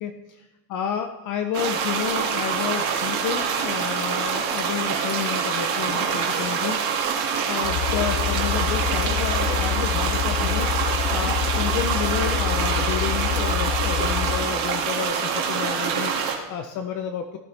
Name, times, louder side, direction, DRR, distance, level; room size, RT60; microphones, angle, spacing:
voice 1, 0.7-6.8 7.5-17.4, left 8 dB, 40° left, 6 dB, 0.7 m, -30 dB
sound 1, 1.5-16.3, right 6 dB, 45° right, 2.2 m, -25 dB
sound 2, 7.6-14.5, left 10 dB, 70° left, 1.0 m, -27 dB
18.0 x 10.5 x 3.4 m, 1.1 s
cardioid pair, 170°, 47 cm